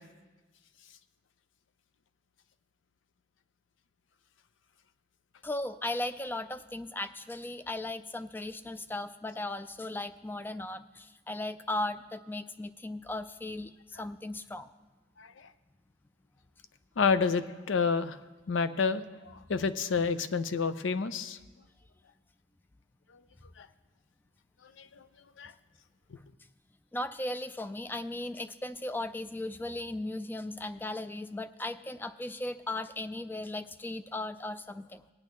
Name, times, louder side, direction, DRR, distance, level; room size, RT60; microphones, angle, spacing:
voice 1, 5.4-14.7 26.9-35.1, left 2 dB, 10° left, 12 dB, 0.3 m, -37 dB
voice 2, 17.0-18.2 18.5-19.0 19.5-21.4 23.6-23.7 24.8-24.9 25.4-25.5, left 5 dB, 80° left, 12 dB, 0.5 m, -28 dB
19.0 x 8.7 x 3.1 m, 1.2 s
head